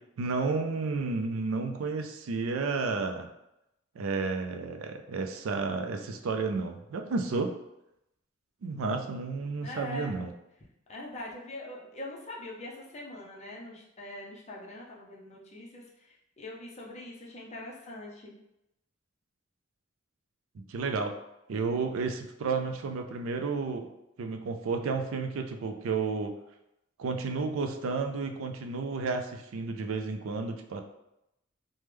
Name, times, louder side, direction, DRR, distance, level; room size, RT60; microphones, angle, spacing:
voice 1, 0.2-3.3 4.0-7.5 8.6-10.3 20.6-21.1 21.5-23.9 24.2-26.3 27.0-30.8, right 4 dB, 85° right, 5 dB, 0.4 m, -32 dB
voice 2, 9.6-10.1 10.9-18.4, left 1 dB, 35° left, -3 dB, 0.6 m, -43 dB
3.2 x 2.1 x 3.3 m, 0.85 s
head